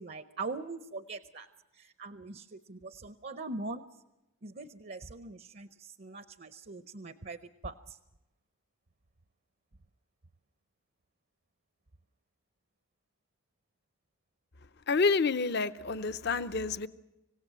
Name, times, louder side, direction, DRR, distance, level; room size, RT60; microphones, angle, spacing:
voice 1, 0.0-1.5 1.7-3.8 4.4-8.0, right 3 dB, 45° right, 11 dB, 0.7 m, -42 dB
voice 2, 14.9-16.9, left 4 dB, 50° left, 13 dB, 0.7 m, -28 dB
26.0 x 17.5 x 7.5 m, 0.99 s
head